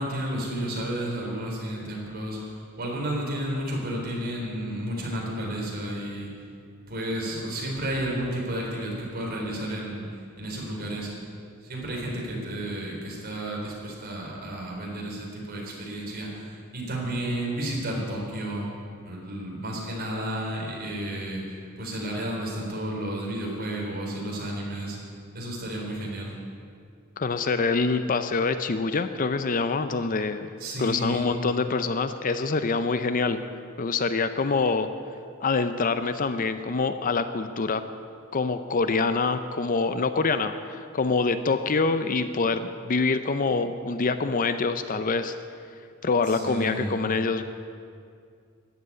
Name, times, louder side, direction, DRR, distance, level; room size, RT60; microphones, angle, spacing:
voice 1, 0.0-2.4 2.8-6.3 6.9-10.0 10.4-11.1 11.7-16.4 16.7-18.7 19.0-21.4 21.8-25.0 25.3-26.3 30.6-31.3 46.3-47.0, right 1 dB, 45° right, -2 dB, 4.0 m, -32 dB
voice 2, 27.2-30.5 30.8-33.4 33.8-34.9 35.4-37.8 38.3-45.3 46.0-47.4, left 4 dB, 40° left, 10 dB, 0.5 m, -25 dB
14.0 x 8.1 x 9.6 m, 2.3 s
head